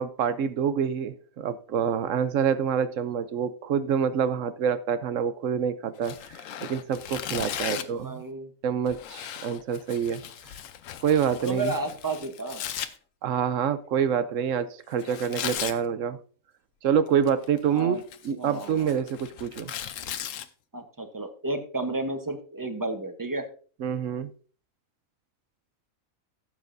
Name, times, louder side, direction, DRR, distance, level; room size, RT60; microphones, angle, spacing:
voice 1, 0.0-8.2 8.6-10.2 11.0-11.7 13.2-16.2 16.8-18.0 18.2-19.7 23.8-24.3, right 8 dB, 70° right, 13 dB, 1.0 m, -27 dB
Tearing, 6.0-8.0 8.8-12.9 15.0-15.8 17.1-17.6 18.0-20.4, left 10 dB, 70° left, 1.0 m, -37 dB
voice 2, 7.6-8.5 11.4-12.6 17.7-18.0 18.4-18.8 20.7-23.5, right 2 dB, 15° right, 7 dB, 0.9 m, -32 dB
16.0 x 7.4 x 2.6 m, 0.41 s
omnidirectional pair, 1.4 m